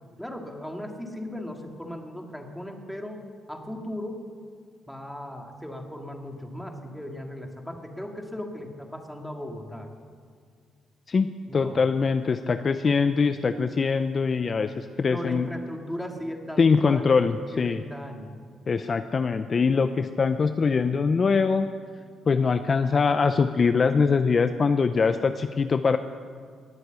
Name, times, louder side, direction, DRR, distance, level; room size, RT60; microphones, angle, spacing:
voice 1, 0.2-3.2 3.5-4.2 4.9-9.9 11.5-11.8 15.1-17.0 17.5-18.3, left 1 dB, 5° left, 2 dB, 2.2 m, -37 dB
voice 2, 11.1-15.5 16.6-17.8 18.7-21.7 22.3-26.0, left 5 dB, 40° left, 10 dB, 0.6 m, -23 dB
20.0 x 7.9 x 8.2 m, 2.1 s
cardioid pair, 90°, 0 cm